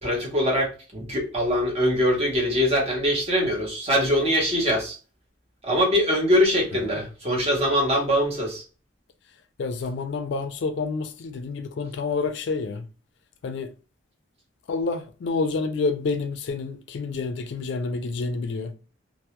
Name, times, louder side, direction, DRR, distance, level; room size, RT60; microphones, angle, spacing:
voice 1, 0.0-5.0 5.6-8.6, equal, 30° right, 0.7 m, -23 dB
voice 2, 6.7-7.0 9.6-12.8 13.4-13.7 14.7-18.8, left 4 dB, 60° left, 0.3 m, -28 dB
2.2 x 2.0 x 2.8 m
head